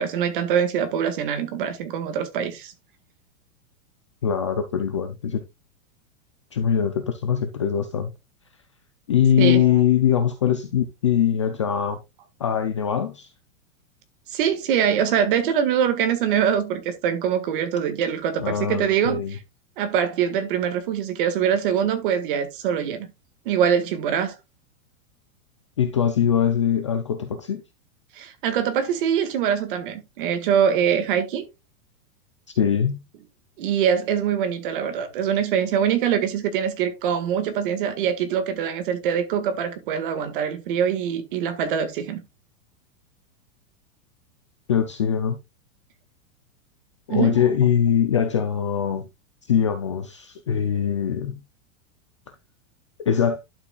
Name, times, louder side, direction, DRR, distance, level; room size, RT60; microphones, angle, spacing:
voice 1, 0.0-2.7 9.4-9.7 14.3-19.2 19.8-23.1 23.4-24.3 28.1-31.4 33.6-42.2 47.1-47.4, right 8 dB, 40° right, 1.7 m, -23 dB
voice 2, 4.2-5.4 6.5-8.1 9.1-12.0 12.4-13.3 18.4-19.4 25.8-27.6 32.6-33.0 44.7-45.4 47.1-49.1 49.5-51.4 53.1-53.4, left 8 dB, 25° left, 0.4 m, -22 dB
11.5 x 6.9 x 2.3 m
supercardioid pair, 175°, 40 cm